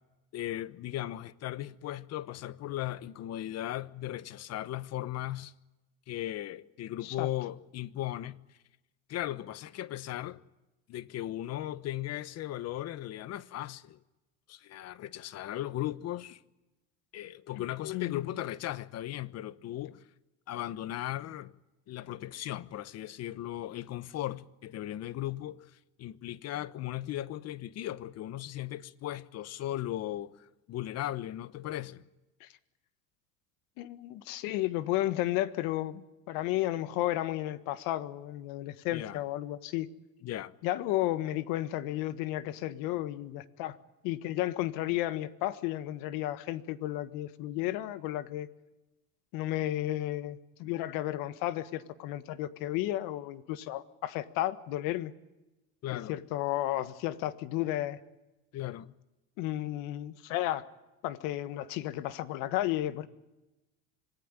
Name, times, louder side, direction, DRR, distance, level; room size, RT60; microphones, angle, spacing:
voice 1, 0.3-5.5 6.1-8.4 9.1-10.4 10.9-14.0 14.5-16.4 17.1-20.0 20.5-21.5 21.9-25.7 26.0-32.0 38.9-39.2 40.2-40.5 55.8-56.1 58.5-58.9, left 13 dB, 45° left, 1.1 m, -37 dB
voice 2, 17.5-18.3 32.4-32.5 33.8-39.9 40.6-43.8 44.0-48.5 49.3-55.1 55.9-58.0 59.4-60.6 61.0-63.1, left 14 dB, 70° left, 1.6 m, -33 dB
26.0 x 18.5 x 9.8 m
supercardioid pair, 105°, 35 cm